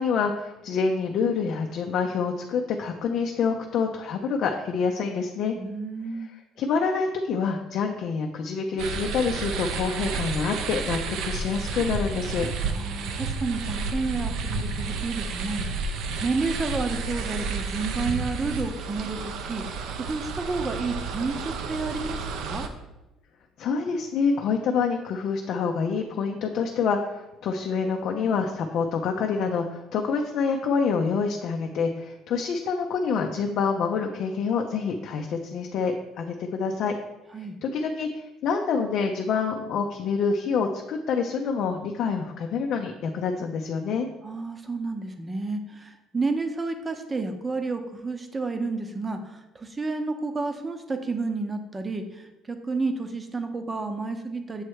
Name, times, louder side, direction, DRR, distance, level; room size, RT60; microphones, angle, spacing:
voice 1, 0.0-5.6 6.6-12.5 23.6-37.0 37.6-44.1, left 5 dB, 60° left, 2 dB, 0.5 m, -27 dB
voice 2, 5.6-6.3 12.7-22.7 37.3-37.6 44.2-54.6, right 3 dB, 20° right, 7 dB, 0.7 m, -31 dB
sound 1, 8.8-22.7, right 4 dB, 75° right, 0.6 m, -31 dB
7.2 x 3.1 x 4.6 m, 0.98 s
cardioid pair, 110°, 0 cm